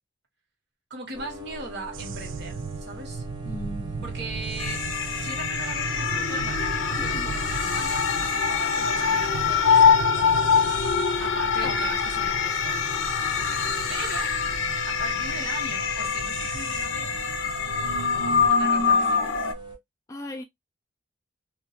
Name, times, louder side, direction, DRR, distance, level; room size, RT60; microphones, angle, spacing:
voice 1, 0.9-3.2 4.0-4.9 5.2-10.2 11.2-12.8 13.9-14.4 14.9-17.1 18.5-19.4, right 2 dB, 60° right, 0.9 m, -39 dB
sound 1, 1.1-19.8, right 1 dB, 25° right, 0.6 m, -42 dB
sound 2, 1.9-18.5, right 5 dB, 80° right, 0.4 m, -37 dB
voice 2, 3.4-4.2 7.0-7.4 11.6-12.0 20.1-20.4, left 1 dB, 15° left, 0.3 m, -38 dB
sound 3, 4.6-19.5, left 6 dB, 90° left, 0.5 m, -24 dB
2.2 x 2.1 x 2.6 m
head